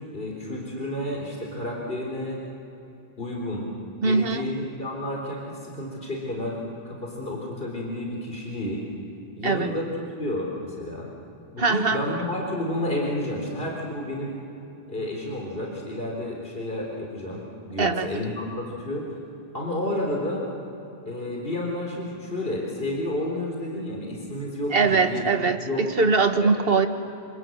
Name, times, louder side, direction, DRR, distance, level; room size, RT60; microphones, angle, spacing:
voice 1, 0.0-2.4 3.2-3.7 4.0-6.6 6.8-8.8 9.4-9.9 10.2-11.1 11.5-14.4 14.9-19.1 19.5-20.5 21.1-25.8 26.4-26.5, left 1 dB, 55° left, -2 dB, 4.1 m, -31 dB
voice 2, 4.0-4.4 9.4-9.7 11.6-12.0 17.8-18.1 24.7-26.9, right 4 dB, 60° right, 7 dB, 1.7 m, -22 dB
27.5 x 26.5 x 7.9 m, 2.9 s
omnidirectional pair, 1.1 m